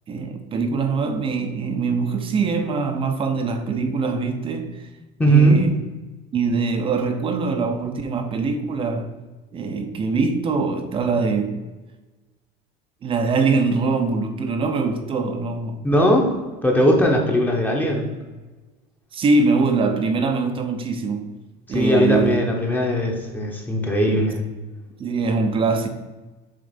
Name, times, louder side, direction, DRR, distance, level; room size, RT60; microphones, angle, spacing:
voice 1, 0.1-4.9 5.2-5.7 6.3-9.1 9.5-11.6 13.0-15.8 19.1-21.2 21.7-22.5 25.0-25.9, right 4 dB, 25° right, 0.8 m, -23 dB
voice 2, 5.2-5.7 15.8-18.1 21.7-24.4, right 1 dB, 10° left, 1.0 m, -19 dB
7.4 x 3.3 x 5.2 m
cardioid pair, 155°, 20 cm